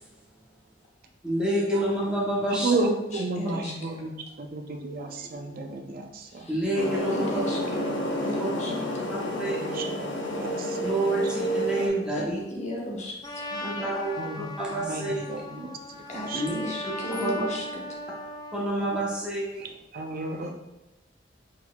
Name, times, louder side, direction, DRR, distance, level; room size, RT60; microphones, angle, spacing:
voice 1, 1.2-2.7 6.5-7.5 8.4-8.5 9.1-9.6 10.8-12.4 13.6-15.1 16.3-16.5 17.1-17.4 18.5-19.5, right 1 dB, 5° right, -5 dB, 0.8 m, -28 dB
voice 2, 2.6-6.5 8.6-8.9 9.4-10.9 11.2-11.3 14.2-16.5 19.5-20.5, right 3 dB, 50° right, 4 dB, 0.5 m, -33 dB
voice 3, 3.1-4.0 6.3-6.6 7.1-9.0 12.1-13.9 16.1-17.8, equal, 40° left, -2 dB, 0.9 m, -36 dB
sound 1, 6.8-11.9, equal, 80° left, 0.6 m, -30 dB
Trumpet, 13.2-18.7, left 2 dB, 25° left, 0.3 m, -38 dB
4.5 x 4.0 x 2.2 m, 1.0 s
head